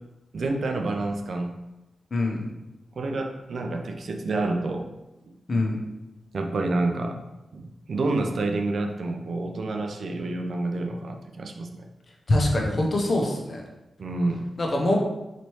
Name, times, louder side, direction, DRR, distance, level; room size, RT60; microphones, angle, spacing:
voice 1, 0.3-1.5 2.9-4.9 6.3-7.2 7.5-11.9 14.0-14.5, right 2 dB, 65° right, 4 dB, 0.4 m, -28 dB
voice 2, 2.1-2.4 5.5-5.8 12.3-13.6 14.6-15.0, left 1 dB, 45° left, 0 dB, 0.7 m, -23 dB
4.1 x 3.1 x 3.1 m, 0.97 s
wide cardioid pair, 105°, 0 cm